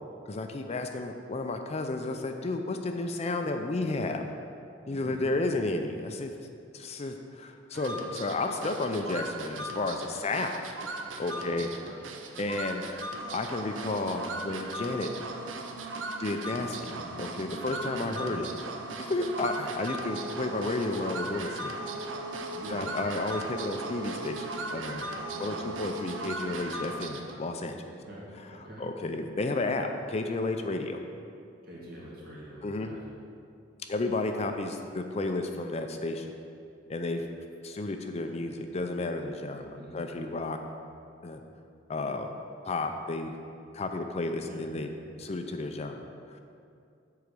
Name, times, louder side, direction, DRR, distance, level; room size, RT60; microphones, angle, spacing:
voice 1, 0.3-4.2 4.9-6.3 6.7-10.6 11.2-11.7 12.4-12.8 13.3-15.1 16.2-16.9 17.2-18.5 19.0-21.7 22.7-25.1 25.4-27.7 28.8-31.0 32.6-32.9 33.9-36.3 36.9-37.2 37.6-40.6 41.2-41.4 41.9-42.3 42.6-43.3 43.7-44.9 45.2-46.0 46.3-46.4, left 2 dB, 35° left, 5 dB, 0.4 m, -32 dB
voice 2, 4.9-5.3 11.3-11.8 16.6-17.0 17.8-18.3 22.5-22.9 25.3-25.6 27.9-28.9 31.6-33.0 39.8-40.1 44.4-44.7, right 1 dB, 55° right, -5 dB, 2.1 m, -46 dB
sound 1, 7.7-27.4, right 2 dB, 85° right, 0.7 m, -38 dB
7.9 x 4.8 x 6.8 m, 2.4 s
head